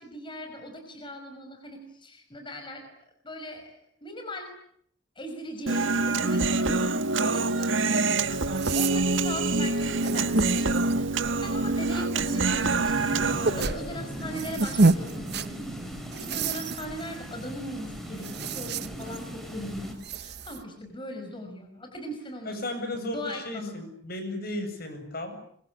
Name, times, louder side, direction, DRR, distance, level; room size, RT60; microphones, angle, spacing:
voice 1, 0.0-2.9 3.2-3.7 4.0-4.5 5.2-13.1 13.6-23.8, equal, 25° left, 4 dB, 5.5 m, -39 dB
Human voice, 5.7-13.7, right 3 dB, 90° right, 1.6 m, -26 dB
sound 1, 8.2-20.6, right 3 dB, 60° right, 1.2 m, -31 dB
sound 2, 12.5-19.9, right 1 dB, ahead, 6.4 m, -39 dB
voice 2, 13.4-14.2 22.4-25.4, left 1 dB, 55° left, 7 dB, 7.8 m, -35 dB
25.5 x 24.0 x 9.9 m, 0.67 s
head